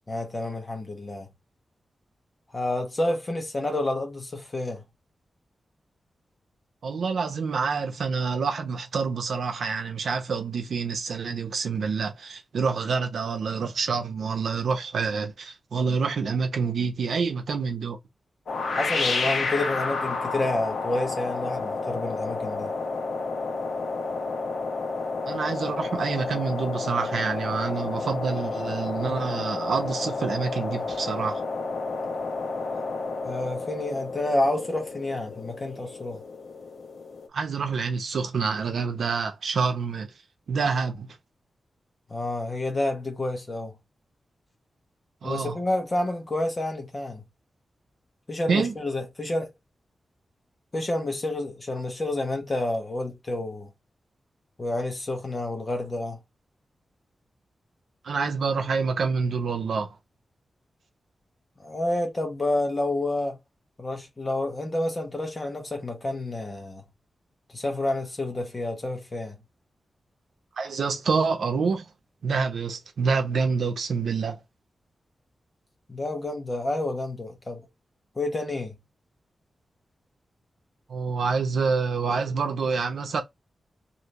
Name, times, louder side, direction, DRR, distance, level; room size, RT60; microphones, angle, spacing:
voice 1, 0.1-1.3 2.5-4.8 18.7-22.7 32.7-32.8 33.2-36.2 42.1-43.7 45.2-47.2 48.3-49.5 50.7-53.7 54.6-56.2 61.6-63.4 63.8-66.8 67.5-69.4 75.9-77.6 78.2-78.7, left 2 dB, 25° left, 1.0 m, -29 dB
voice 2, 6.8-18.0 25.3-31.4 37.3-40.1 40.5-41.1 45.2-45.6 48.5-48.7 58.0-59.9 70.6-71.9 72.2-74.4 80.9-83.2, right 5 dB, 80° right, 0.7 m, -27 dB
sound 1, 18.5-37.3, left 3 dB, 65° left, 0.7 m, -31 dB
3.3 x 2.7 x 2.6 m
wide cardioid pair, 175°, 0 cm